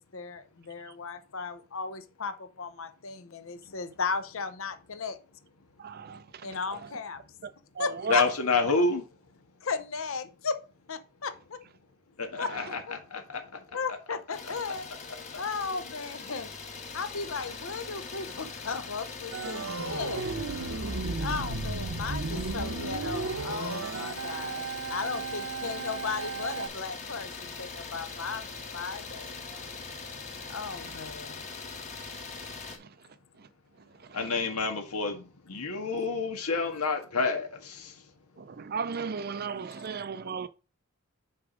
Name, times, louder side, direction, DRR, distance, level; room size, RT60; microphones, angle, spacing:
voice 1, 0.0-5.2 6.4-7.2 7.8-8.2 9.6-10.6 10.9-11.6 12.4-12.5 12.9-13.0 13.7-14.9 15.4-16.5 16.9-20.2 21.2-24.6 24.9-28.4 28.7-29.4 30.5-31.5, left 5 dB, 65° left, 0.7 m, -35 dB
voice 2, 5.8-6.2 7.4-7.5 7.8-8.3 38.6-40.5, right 5 dB, 45° right, 0.5 m, -34 dB
voice 3, 8.1-9.0 12.2-13.4 34.1-37.9, left 4 dB, 90° left, 1.7 m, -29 dB
Idling, 14.3-32.8, left 4 dB, 30° left, 1.4 m, -41 dB
Organ, 19.3-26.7, right 3 dB, 65° right, 0.9 m, -34 dB
6.8 x 5.0 x 4.9 m
head